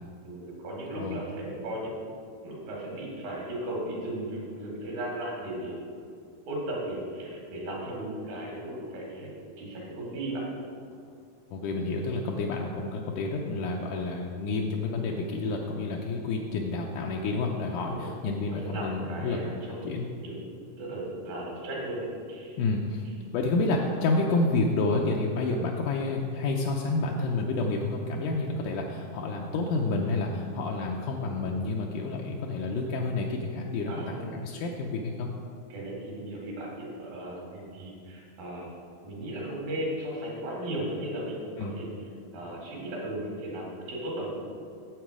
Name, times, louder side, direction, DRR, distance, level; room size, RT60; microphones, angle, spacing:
voice 1, 0.2-2.0 2.4-5.8 6.5-9.3 9.6-10.4 17.9-18.1 18.4-20.4 20.8-22.6 33.9-34.6 35.7-38.7 39.0-41.9 42.3-44.3, right 1 dB, 75° right, -3 dB, 3.8 m, -36 dB
voice 2, 11.5-20.1 22.6-23.1 23.3-35.3 41.6-41.7, left 3 dB, 85° left, 0 dB, 1.9 m, -29 dB
9.2 x 7.4 x 4.9 m, 2.4 s
omnidirectional pair, 4.3 m